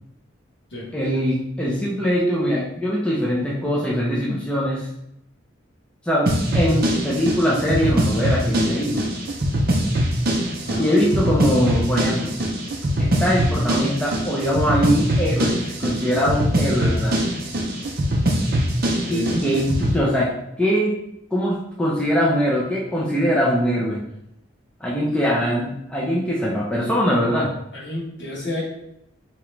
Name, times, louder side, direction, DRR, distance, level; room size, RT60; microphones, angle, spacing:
voice 1, 0.9-4.9 6.0-9.0 10.8-12.3 13.0-17.2 19.1-20.3 20.6-21.0 21.3-24.0 24.8-27.5, equal, 5° left, -6 dB, 0.5 m, -22 dB
sound 1, 6.3-20.0, equal, 45° right, 0.5 m, -22 dB
voice 2, 10.6-11.0 19.1-19.4 25.4-25.5 27.7-28.7, left 1 dB, 55° left, -5 dB, 1.3 m, -30 dB
3.6 x 2.9 x 3.2 m, 0.78 s
head